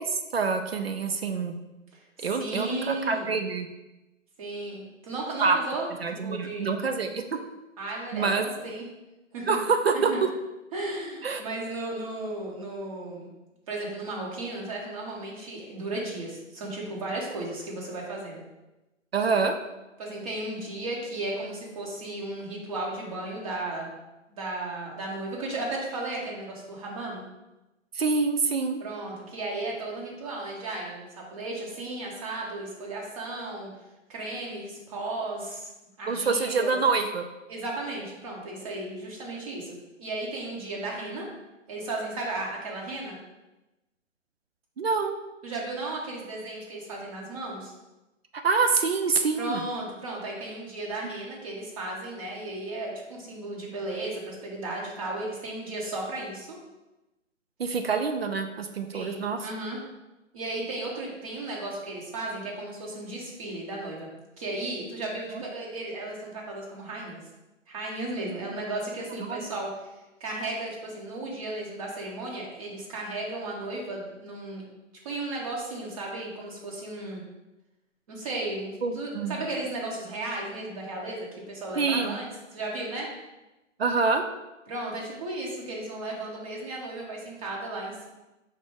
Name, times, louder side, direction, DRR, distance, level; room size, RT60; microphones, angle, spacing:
voice 1, 0.0-1.6 2.2-3.7 5.4-5.6 6.0-7.2 8.1-8.5 9.5-10.3 11.2-11.4 19.1-19.5 27.9-28.8 36.1-37.3 44.8-45.2 48.4-49.6 57.6-59.4 65.3-65.4 69.3-69.4 78.8-79.5 81.8-82.2 83.8-84.2, right 4 dB, 50° right, 6 dB, 0.4 m, -26 dB
voice 2, 1.9-3.3 4.4-5.9 6.2-6.7 7.8-8.9 9.3-9.6 9.9-10.2 10.7-13.3 13.7-18.4 20.0-23.9 24.3-27.2 28.8-33.7 34.1-35.7 36.0-36.8 37.5-41.3 41.7-43.2 45.4-47.7 49.4-56.6 58.9-59.8 60.3-64.1 64.4-67.2 67.7-69.9 70.2-74.6 75.0-77.2 78.1-83.1 84.7-88.1, right 2 dB, 25° right, -3 dB, 1.0 m, -35 dB
5.0 x 2.2 x 4.8 m, 1.0 s
figure-of-eight pair, 140°, 38 cm